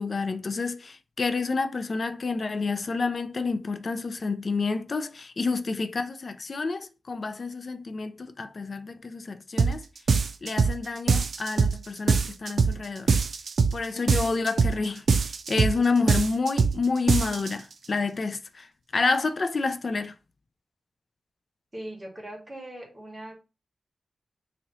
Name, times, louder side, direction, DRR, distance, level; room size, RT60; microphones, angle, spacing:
voice 1, 0.0-9.9 10.4-13.2 13.7-18.7 18.9-20.1, left 4 dB, 55° left, 0.3 m, -29 dB
sound 1, 9.6-9.8 10.1-10.8 11.1-11.8 12.1-12.8 13.1-13.8 14.1-14.8 15.1-15.8 16.1-16.8 17.1-17.5, right 5 dB, 80° right, 0.4 m, -22 dB
voice 2, 21.7-23.3, right 1 dB, 15° right, 1.5 m, -40 dB
3.0 x 2.8 x 4.0 m
wide cardioid pair, 105°, 0 cm